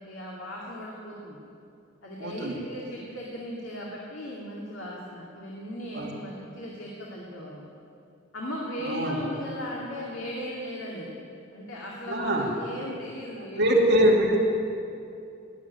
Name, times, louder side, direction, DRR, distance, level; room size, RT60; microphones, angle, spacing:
voice 1, 0.1-1.4 2.0-7.7 8.3-11.2 11.5-13.8, equal, 90° left, -4 dB, 2.3 m, -37 dB
voice 2, 2.2-2.5 5.9-6.1 8.8-9.2 12.1-12.4 13.5-14.4, right 1 dB, 60° right, -2 dB, 2.7 m, -23 dB
19.0 x 7.4 x 9.5 m, 2.6 s
head